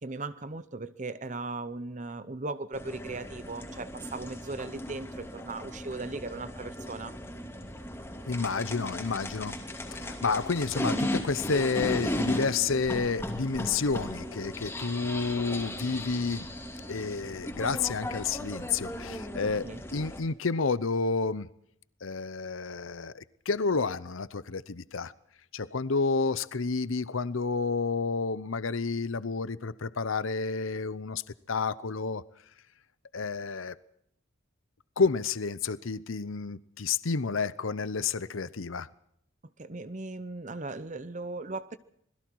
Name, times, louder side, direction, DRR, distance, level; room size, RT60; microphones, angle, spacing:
voice 1, 0.0-7.2 19.6-19.8 39.6-41.8, right 3 dB, 35° right, 13 dB, 0.7 m, -38 dB
sound 1, 2.7-20.2, left 1 dB, 10° left, 2.9 m, -36 dB
voice 2, 8.3-9.5 9.9-16.5 16.9-21.5 22.0-25.1 25.5-31.2 31.5-32.2 33.1-33.7 35.0-38.9, left 4 dB, 80° left, 17 dB, 0.8 m, -30 dB
26.5 x 21.0 x 4.7 m, 0.71 s
head